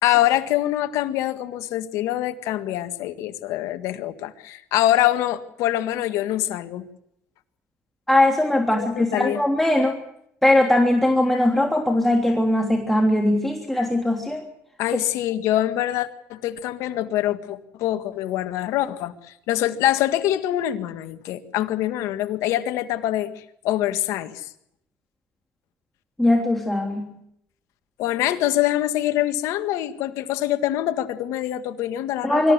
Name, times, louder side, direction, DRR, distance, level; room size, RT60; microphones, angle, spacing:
voice 1, 0.0-6.9 8.7-9.4 14.8-23.3 23.6-24.5 28.0-32.5, left 13 dB, 80° left, 9 dB, 1.8 m, -24 dB
voice 2, 8.1-10.0 10.4-14.4 26.2-27.1 32.2-32.5, left 1 dB, 5° left, 2 dB, 3.2 m, -20 dB
24.5 x 14.5 x 9.7 m, 0.76 s
supercardioid pair, 85°, 5 cm